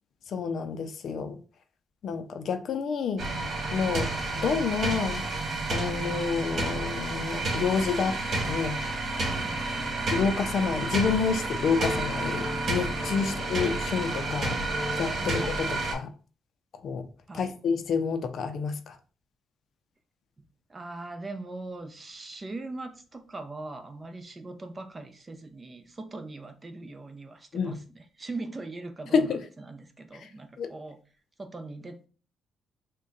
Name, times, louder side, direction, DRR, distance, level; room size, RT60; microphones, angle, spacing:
voice 1, 0.3-1.4 2.0-3.2 3.7-4.1 4.4-5.2 5.7-8.8 10.1-14.6 15.0-16.1 16.8-17.1 17.3-19.0 27.5-27.8 29.1-29.4 30.6-30.7, left 5 dB, 60° left, 0.5 m, -28 dB
sound 1, 3.2-15.9, right 2 dB, 50° right, 1.4 m, -30 dB
voice 2, 9.4-10.1 17.3-17.6 20.4-31.0 31.4-32.1, right 2 dB, 25° right, 0.6 m, -41 dB
Wind instrument woodwind instrument, 11.7-15.8, left 2 dB, 25° left, 0.8 m, -38 dB
3.6 x 2.2 x 3.8 m
cardioid pair, 90°, 0 cm